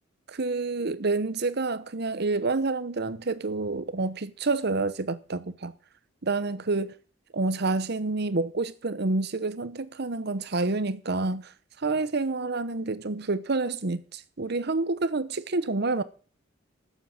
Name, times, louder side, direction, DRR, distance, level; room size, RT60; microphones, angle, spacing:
voice 1, 0.3-5.7 6.2-6.9 7.3-11.5 11.8-16.0, right 3 dB, 55° right, 0.9 m, -28 dB
11.5 x 7.5 x 7.3 m
head